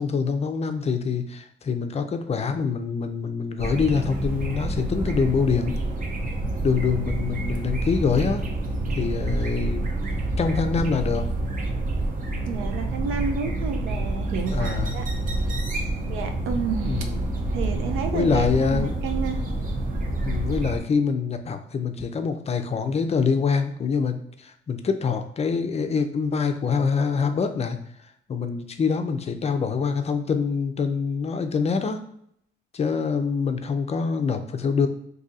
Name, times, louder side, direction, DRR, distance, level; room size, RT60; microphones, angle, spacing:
voice 1, 0.0-5.7 6.6-8.5 8.9-9.8 10.4-11.3 14.5-15.1 16.8-17.3 18.1-18.9 20.2-27.8 28.3-32.1 32.7-34.9, left 5 dB, 30° left, 7 dB, 0.4 m, -25 dB
sound 1, 3.6-20.8, right 2 dB, 45° right, 0.8 m, -28 dB
voice 2, 12.5-15.1 16.1-17.1 17.5-19.4, right 5 dB, 90° right, 6 dB, 0.5 m, -30 dB
2.7 x 2.5 x 3.9 m, 0.68 s
cardioid pair, 90°, 20 cm